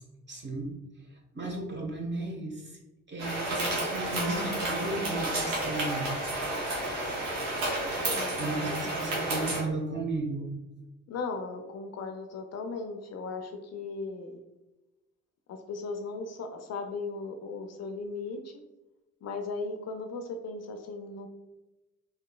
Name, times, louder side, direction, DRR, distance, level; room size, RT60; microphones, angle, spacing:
voice 1, 0.3-0.7 1.3-2.8 3.1-6.2 8.4-10.5, right 2 dB, 30° right, -1 dB, 1.1 m, -34 dB
sound 1, 3.2-9.6, right 1 dB, 90° right, 0.7 m, -31 dB
voice 2, 8.1-9.2 11.1-14.4 15.5-18.5 19.2-21.3, left 3 dB, 45° left, 5 dB, 0.5 m, -37 dB
3.5 x 2.7 x 2.3 m, 1.0 s
hypercardioid pair, 45°, 36 cm